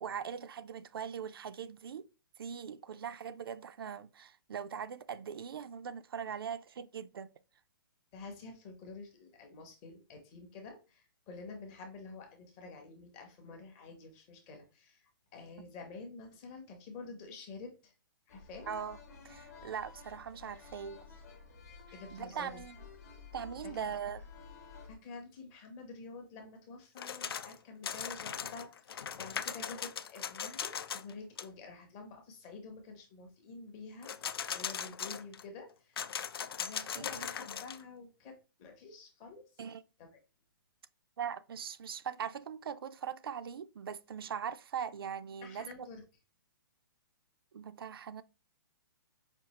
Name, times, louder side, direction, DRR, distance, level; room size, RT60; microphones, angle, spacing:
voice 1, 0.0-2.1 2.4-7.3 15.6-15.7 18.7-19.0 19.2-21.0 22.1-22.8 23.3-24.2 36.9-37.3 39.6-39.8 41.2-45.9 47.5-48.2, right 7 dB, 75° right, 0.4 m, -41 dB
voice 2, 8.1-17.9 18.3-18.7 21.9-22.6 23.7-23.9 24.9-34.1 34.5-36.1 36.6-39.4 40.1-40.2 45.4-46.0, left 4 dB, 15° left, 0.6 m, -49 dB
sound 1, 18.3-25.0, left 5 dB, 40° left, 0.9 m, -52 dB
sound 2, 27.0-27.6 27.8-31.1 31.4-31.5 34.0-35.4 36.0-37.8, left 8 dB, 90° left, 0.4 m, -39 dB
5.1 x 2.4 x 2.9 m
hypercardioid pair, 175°, 12 cm